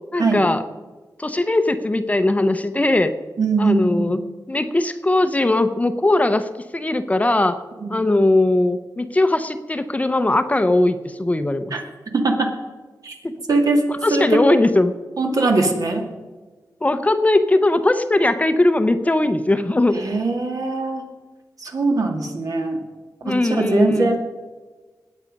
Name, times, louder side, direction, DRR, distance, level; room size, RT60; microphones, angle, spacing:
voice 1, 0.1-0.6 1.2-3.1 3.6-4.2 4.5-7.6 7.9-11.7 13.2-13.4 13.9-14.9 16.8-20.0 23.2-24.1, left 2 dB, 20° left, 9 dB, 0.7 m, -19 dB
voice 2, 3.4-4.1 7.8-8.0 11.7-11.8 12.2-12.5 13.0-13.2 13.5-13.8 14.1-14.6 15.2-16.1 19.9-21.0 21.6-22.8 23.3-24.2, right 3 dB, 55° right, 2 dB, 2.2 m, -21 dB
19.5 x 8.2 x 5.3 m, 1.3 s
wide cardioid pair, 110°, 7 cm